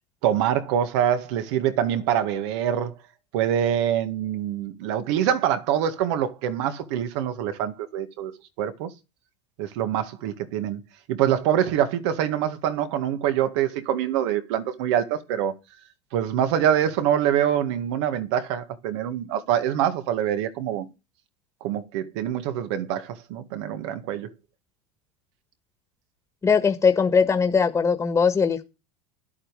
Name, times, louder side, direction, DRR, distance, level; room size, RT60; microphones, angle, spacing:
voice 1, 0.2-2.9 3.3-8.3 8.6-8.9 9.6-10.8 11.1-15.5 16.1-20.9 21.6-24.3, right 10 dB, 70° right, 1.9 m, -25 dB
voice 2, 26.4-28.6, left 5 dB, 20° left, 1.6 m, -20 dB
11.5 x 8.5 x 4.9 m
supercardioid pair, 115°, 15 cm